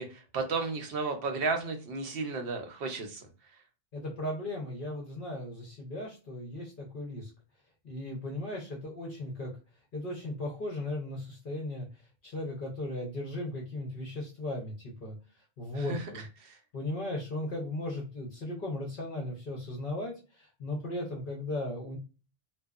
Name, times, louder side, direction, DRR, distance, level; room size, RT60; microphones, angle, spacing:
voice 1, 0.0-3.2 15.7-16.0 16.4-16.5, right 4 dB, 65° right, 5 dB, 0.8 m, -33 dB
voice 2, 3.9-7.3 7.8-9.5 9.9-11.9 12.2-15.2 15.6-16.2 16.7-22.0, left 1 dB, 55° left, -2 dB, 0.9 m, -36 dB
2.7 x 2.2 x 2.4 m, 0.33 s
omnidirectional pair, 1.1 m